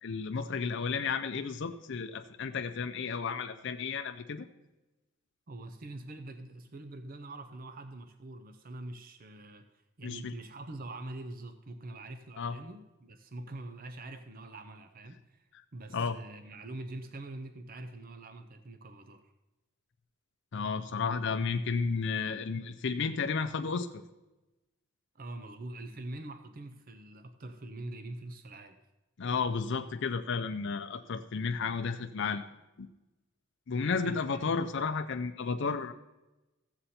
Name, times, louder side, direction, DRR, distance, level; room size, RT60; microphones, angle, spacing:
voice 1, 0.0-4.5 10.0-10.3 12.4-12.6 15.9-16.2 20.5-24.0 29.2-32.4 33.7-35.9, left 5 dB, 60° left, 8 dB, 0.5 m, -32 dB
voice 2, 5.5-9.7 10.0-19.3 25.1-28.8 34.0-34.7, right 2 dB, 45° right, 8 dB, 0.6 m, -44 dB
14.0 x 7.8 x 4.2 m, 1.0 s
head